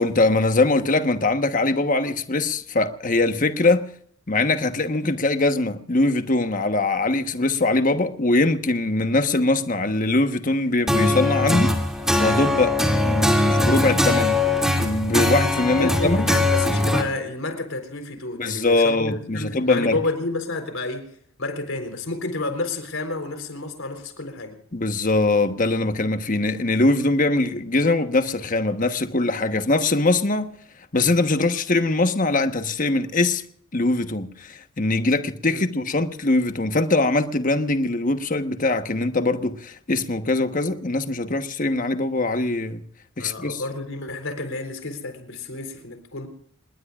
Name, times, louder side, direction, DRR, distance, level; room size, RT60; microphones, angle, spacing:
voice 1, 0.0-3.8 4.3-11.7 12.2-14.4 14.8-16.2 18.3-20.0 24.7-30.5 30.9-33.4 33.7-42.8 43.2-43.6, left 2 dB, 40° left, 1.2 m, -22 dB
sound 1, 10.9-17.0, left 1 dB, 5° right, 2.5 m, -21 dB
voice 2, 15.8-21.1 21.4-24.6 35.5-35.6 43.2-46.3, left 2 dB, 75° left, 3.9 m, -30 dB
28.0 x 20.5 x 2.5 m
head